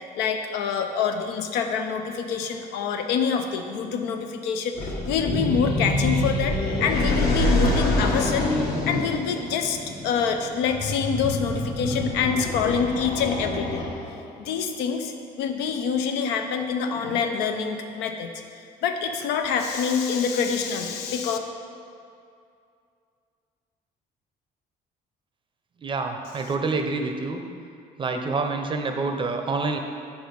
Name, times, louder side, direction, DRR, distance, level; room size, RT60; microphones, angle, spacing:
voice 1, 0.1-8.5 8.9-13.9 14.4-18.3 18.8-21.4, left 6 dB, 90° left, 5 dB, 0.6 m, -26 dB
sound 1, 4.8-14.3, left 1 dB, 65° left, 1.2 m, -26 dB
voice 2, 25.8-27.4 28.0-29.8, right 3 dB, 30° right, 5 dB, 0.5 m, -27 dB
5.3 x 4.6 x 5.2 m, 2.4 s
cardioid pair, 110°, 17 cm